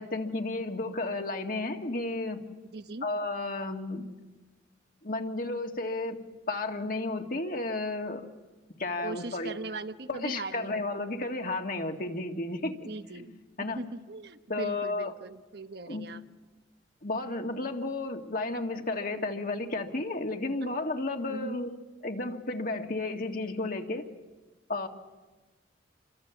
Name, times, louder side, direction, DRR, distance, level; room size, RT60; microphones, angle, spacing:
voice 1, 0.0-2.4 3.0-4.1 5.0-6.2 6.5-8.3 8.8-9.5 10.1-12.9 13.1-13.3 13.6-13.8 14.5-15.1 15.9-16.1 17.0-21.7 22.0-24.1 24.7-24.9, left 2 dB, 50° left, 3 dB, 2.1 m, -32 dB
voice 2, 2.7-3.1 9.0-11.1 12.8-13.4 13.7-16.2 21.3-21.6, right 3 dB, 65° right, 9 dB, 1.2 m, -40 dB
29.0 x 24.5 x 7.2 m, 1.2 s
head